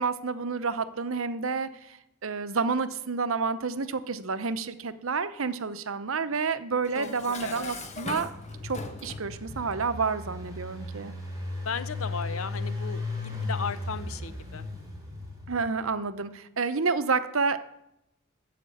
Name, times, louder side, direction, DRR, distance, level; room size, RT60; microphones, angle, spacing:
voice 1, 0.0-8.3 8.6-11.1 15.5-17.6, right 4 dB, 70° right, 12 dB, 0.8 m, -29 dB
Dishes pots and pans, 6.8-9.3, left 3 dB, 35° left, 1.2 m, -40 dB
voice 2, 7.4-7.7 11.6-14.6, left 5 dB, 75° left, 13 dB, 0.8 m, -35 dB
Engine, 7.8-15.8, left 2 dB, 20° right, 3.6 m, -36 dB
13.5 x 5.1 x 8.5 m, 0.82 s
head